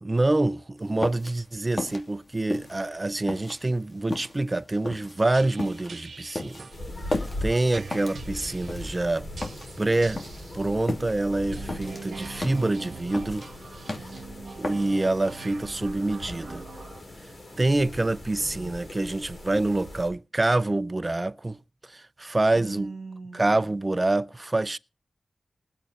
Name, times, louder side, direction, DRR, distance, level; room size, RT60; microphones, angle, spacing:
voice 1, 0.0-6.7 7.1-9.3 9.8-10.2 10.5-13.5 14.6-16.7 17.5-21.6 21.8-22.9 23.3-24.8, right 2 dB, 30° right, 0.6 m, -26 dB
sound 1, 0.8-15.2, left 2 dB, 45° left, 2.8 m, -36 dB
sound 2, 5.3-6.8 7.7-8.8 9.4-10.5 11.4-17.0, right 4 dB, 80° right, 1.2 m, -43 dB
sound 3, 6.7-20.1, left 1 dB, 60° left, 6.5 m, -40 dB
voice 2, 6.9-7.2 13.9-14.9 17.6-18.1 18.4-18.7 22.5-23.7, right 4 dB, 60° right, 2.2 m, -43 dB
20.0 x 7.9 x 4.2 m
cardioid pair, 55°, 0 cm